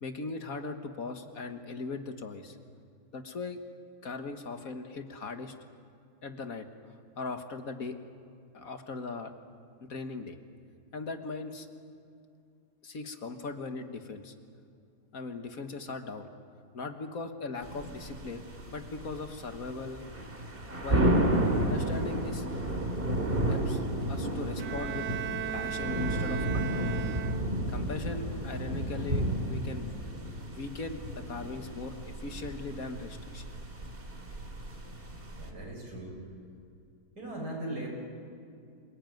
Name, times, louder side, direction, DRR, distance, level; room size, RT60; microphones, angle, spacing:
voice 1, 0.0-2.6 3.1-3.6 4.0-5.5 6.2-6.7 7.2-8.0 8.5-9.3 9.8-10.4 10.9-11.7 12.8-14.3 15.1-16.3 16.7-18.4 18.7-20.1 20.8-21.2 21.6-22.5 23.5-25.1 25.5-26.9 27.7-29.9 30.5-33.4, left 3 dB, 60° left, 7 dB, 1.8 m, -39 dB
sound 1, 17.6-35.5, right 1 dB, 35° right, 2.7 m, -32 dB
Bowed string instrument, 24.6-27.8, right 9 dB, 90° right, 1.4 m, -37 dB
voice 2, 35.4-36.2 37.2-37.9, right 1 dB, 70° right, -1 dB, 7.6 m, -38 dB
27.5 x 19.5 x 9.3 m, 2.4 s
omnidirectional pair, 1.7 m